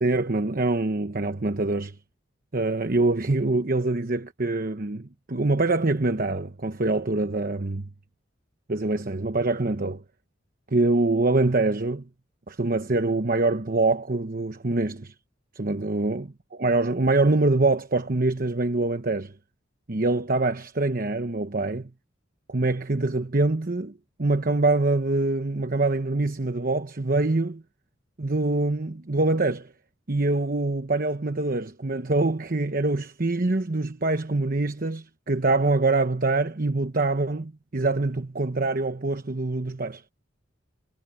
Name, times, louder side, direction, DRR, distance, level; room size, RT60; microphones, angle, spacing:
voice 1, 0.0-2.0 2.5-7.9 8.7-10.0 10.7-12.0 12.5-15.1 15.5-19.3 19.9-21.9 22.5-23.9 24.2-27.6 28.2-29.7 30.1-40.0, right 2 dB, 45° right, 1.1 m, -24 dB
head